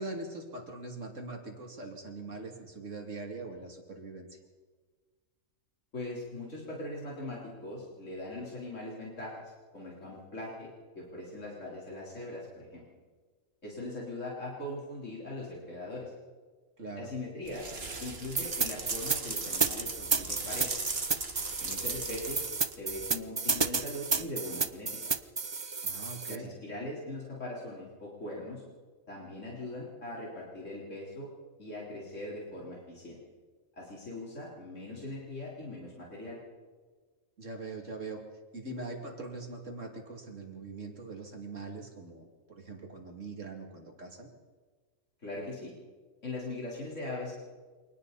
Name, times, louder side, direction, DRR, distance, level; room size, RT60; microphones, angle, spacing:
voice 1, 0.0-4.4 16.8-17.1 25.8-26.5 37.4-38.2 38.5-44.3, right 3 dB, 65° right, 2 dB, 3.0 m, -42 dB
voice 2, 5.9-10.7 10.9-12.8 13.6-16.1 17.0-17.7 18.0-20.8 21.6-22.4 22.8-25.1 26.3-28.6 29.1-31.3 31.6-33.2 33.7-36.4 45.2-45.7 46.2-47.3, left 1 dB, 65° left, -5 dB, 4.3 m, -40 dB
sound 1, 17.5-23.0, right 3 dB, 50° right, 2.0 m, -38 dB
sound 2, 18.4-26.4, right 4 dB, 30° right, 0.5 m, -31 dB
29.0 x 24.5 x 4.2 m, 1.4 s
omnidirectional pair, 1.4 m